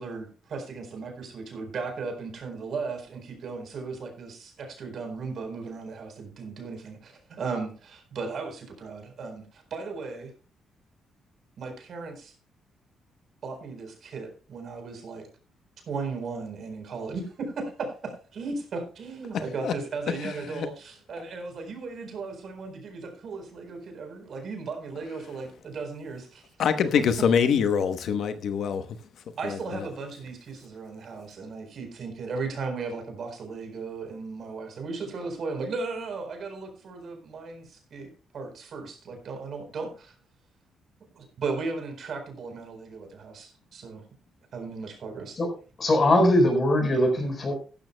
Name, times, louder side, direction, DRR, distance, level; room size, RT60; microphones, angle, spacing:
voice 1, 0.0-10.3 11.6-12.3 13.4-15.2 15.9-26.4 29.4-40.1 41.1-44.0 44.5-45.4, right 4 dB, 55° right, 4.2 m, -36 dB
voice 2, 20.2-20.7 26.6-28.9 29.4-29.8, left 7 dB, 65° left, 0.9 m, -25 dB
voice 3, 45.8-47.5, left 1 dB, 35° left, 4.6 m, -21 dB
15.5 x 13.0 x 2.2 m
cardioid pair, 125°, 0 cm